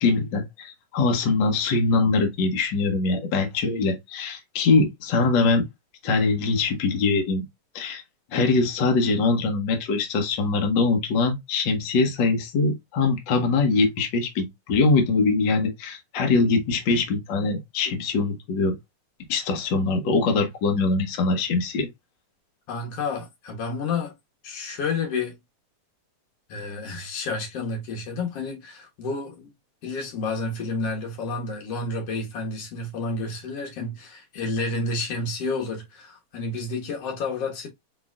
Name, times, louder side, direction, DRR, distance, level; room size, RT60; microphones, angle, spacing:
voice 1, 0.0-5.6 6.0-7.4 7.7-8.0 8.3-18.7 19.3-21.9, left 3 dB, 90° left, 1.0 m, -23 dB
voice 2, 22.7-24.1 24.4-25.3 26.5-29.5 29.8-37.7, left 3 dB, 55° left, 2.2 m, -30 dB
4.8 x 4.0 x 2.4 m
omnidirectional pair, 3.7 m